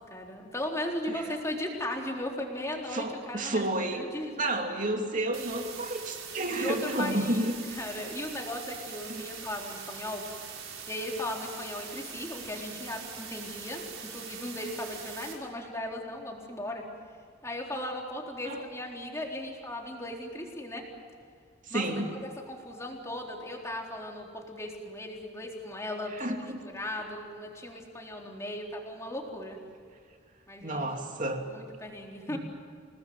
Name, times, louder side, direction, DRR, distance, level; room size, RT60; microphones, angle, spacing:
voice 1, 0.1-4.4 6.5-10.2 10.9-13.8 14.1-16.8 17.4-20.8 21.7-29.6 30.5-30.9 31.4-32.4, left 1 dB, 15° left, 0 dB, 3.9 m, -37 dB
voice 2, 2.9-4.0 4.4-7.6 9.1-9.2 18.4-18.6 21.7-22.1 26.1-26.6 30.6-31.4 32.3-32.4, right 1 dB, 40° right, 3 dB, 3.0 m, -31 dB
sound 1, 5.3-15.3, right 7 dB, 80° right, 5.5 m, -43 dB
29.5 x 19.5 x 7.8 m, 2.1 s
head